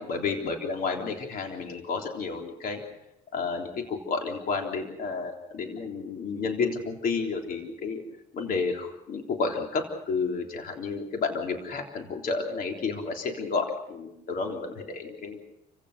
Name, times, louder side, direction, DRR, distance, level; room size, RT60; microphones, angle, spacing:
voice 1, 0.0-2.8 3.3-8.0 8.3-15.4, left 4 dB, 55° left, 3 dB, 3.5 m, -31 dB
29.0 x 16.0 x 6.7 m, 0.85 s
cardioid pair, 110°, 17 cm